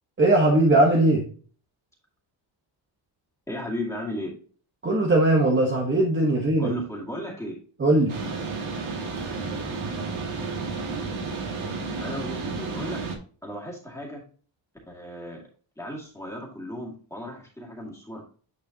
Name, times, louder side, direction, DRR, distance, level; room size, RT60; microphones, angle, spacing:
voice 1, 0.2-1.2 4.8-6.7 7.8-8.1, right 2 dB, 25° right, 0 dB, 1.1 m, -19 dB
voice 2, 3.5-4.3 6.6-7.6 12.0-13.0 13.4-14.2 14.9-15.4 15.8-18.2, equal, 5° left, -4 dB, 2.2 m, -35 dB
sound 1, 8.1-13.2, right 4 dB, 80° right, 2.3 m, -32 dB
9.5 x 4.9 x 2.8 m, 0.41 s
cardioid pair, 150°, 47 cm